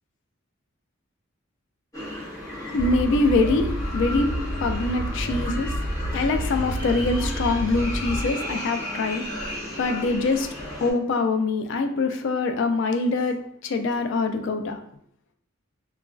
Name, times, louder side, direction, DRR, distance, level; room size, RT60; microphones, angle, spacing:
sound 1, 1.9-10.9, left 1 dB, 15° left, 1.0 m, -34 dB
voice 1, 2.7-4.3 4.6-5.8 6.1-10.5 10.8-14.8, left 3 dB, 65° left, 6 dB, 0.3 m, -24 dB
sound 2, 2.7-8.6, equal, 65° right, 0.5 m, -30 dB
2.9 x 2.4 x 2.3 m, 0.69 s
head